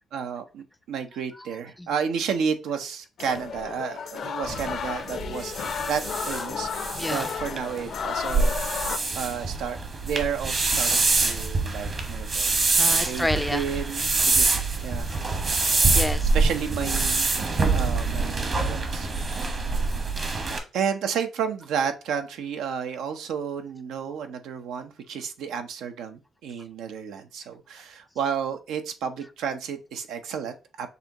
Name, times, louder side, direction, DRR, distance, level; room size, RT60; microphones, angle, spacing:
voice 1, 0.1-12.5 12.9-15.1 16.3-17.3 17.7-19.1 19.5-19.7 20.7-30.9, right 7 dB, 85° right, 0.7 m, -32 dB
voice 2, 1.3-1.9 7.0-7.3 12.8-13.6 14.8-16.3 19.7-19.9, left 1 dB, 10° left, 0.4 m, -32 dB
sound 1, 3.2-9.0, left 7 dB, 60° left, 0.5 m, -33 dB
sound 2, 4.4-20.6, right 3 dB, 45° right, 1.3 m, -25 dB
6.7 x 2.7 x 2.9 m
cardioid pair, 90°, 0 cm